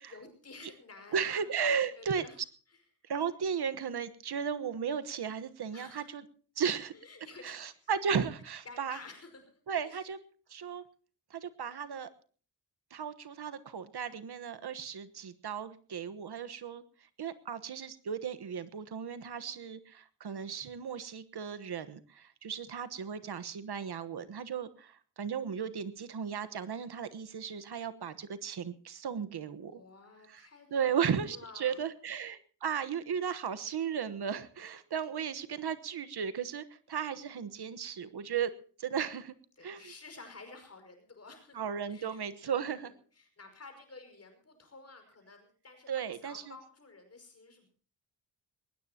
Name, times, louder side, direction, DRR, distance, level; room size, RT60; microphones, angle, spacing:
voice 1, 0.1-1.5 2.0-2.4 2.7-2.8 5.7-6.1 6.9-7.8 8.6-10.0 19.3-19.7 29.7-31.0 31.3-31.8 39.6-41.6 41.9-47.7, left 3 dB, 35° left, 5 dB, 5.7 m, -52 dB
voice 2, 1.1-2.2 3.1-6.2 6.6-6.9 7.4-9.0 9.7-10.2 10.5-10.8 11.3-12.1 12.9-16.8 17.2-29.8 30.3-30.5 30.7-38.5 38.8-39.3 39.6-39.9 41.5-42.9 45.9-46.4, right 7 dB, 65° right, 13 dB, 1.3 m, -35 dB
21.0 x 19.5 x 2.9 m, 0.42 s
wide cardioid pair, 165°, 42 cm